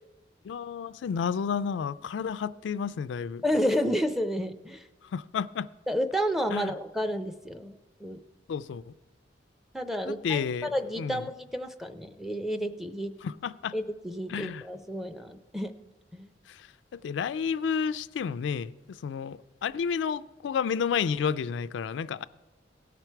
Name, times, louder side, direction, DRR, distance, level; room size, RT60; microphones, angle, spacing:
voice 1, 0.4-3.4 5.1-5.7 6.5-6.7 8.5-8.9 10.1-11.2 13.2-13.7 14.3-14.6 16.5-22.2, left 6 dB, 85° left, 0.3 m, -31 dB
voice 2, 3.4-4.8 5.9-8.2 9.7-13.1 13.7-15.7 16.1-16.3, equal, ahead, 0.5 m, -31 dB
17.0 x 5.9 x 4.5 m
head